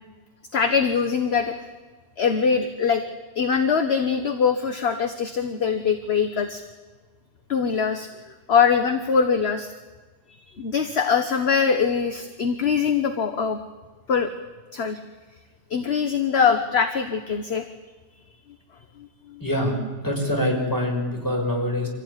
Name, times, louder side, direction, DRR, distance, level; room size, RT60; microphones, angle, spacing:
voice 1, 0.5-1.5 2.2-3.0 3.3-6.6 7.5-8.1 8.5-9.7 10.4-13.6 14.1-14.3 14.7-15.0 15.7-17.6 19.3-19.4, left 6 dB, 40° left, 8 dB, 1.3 m, -22 dB
voice 2, 19.4-19.7 20.0-21.9, left 1 dB, 10° left, 0 dB, 5.7 m, -24 dB
25.5 x 16.0 x 9.9 m, 1.3 s
omnidirectional pair, 1.8 m